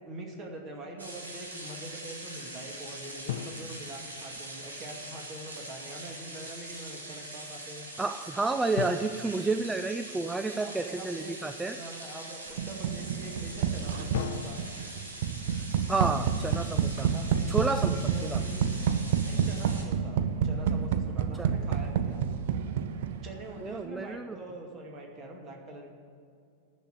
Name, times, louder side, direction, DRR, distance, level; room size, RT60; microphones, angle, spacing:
voice 1, 0.0-7.9 10.6-14.6 17.1-18.6 19.2-22.2 23.2-25.9, right 2 dB, 30° right, 1 dB, 2.2 m, -44 dB
sound 1, 1.0-19.8, right 1 dB, 75° right, 1.9 m, -43 dB
sound 2, 3.3-4.9 8.8-10.6 14.1-16.4, left 10 dB, 55° left, 0.5 m, -40 dB
voice 2, 8.0-11.8 15.9-17.1 17.5-18.4 21.3-21.5 23.6-24.4, right 3 dB, 10° right, 8 dB, 0.4 m, -30 dB
sound 3, 12.6-23.5, right 7 dB, 55° right, 0.6 m, -29 dB
10.5 x 6.8 x 9.2 m, 2.4 s
figure-of-eight pair, 90°, 0 cm